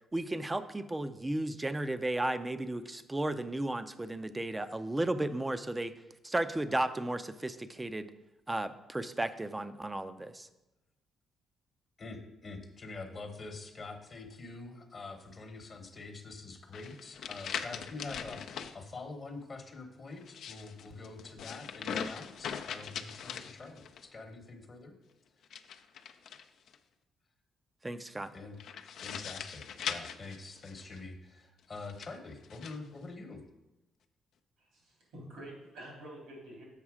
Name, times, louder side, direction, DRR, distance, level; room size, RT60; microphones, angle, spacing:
voice 1, 0.1-5.9 6.2-8.1 8.5-10.5 27.8-28.3, right 1 dB, 15° right, 11 dB, 0.5 m, -34 dB
voice 2, 12.0-24.9 28.3-28.6 28.9-33.4, left 3 dB, 40° left, 4 dB, 1.0 m, -45 dB
sound 1, 16.7-18.7 20.2-24.1 25.4-26.8 28.6-31.0 31.8-32.8, left 7 dB, 70° left, 0.5 m, -41 dB
voice 3, 34.6-36.6, right 1 dB, 80° right, -1 dB, 3.0 m, -48 dB
7.3 x 5.4 x 4.8 m, 0.98 s
cardioid pair, 90°, 0 cm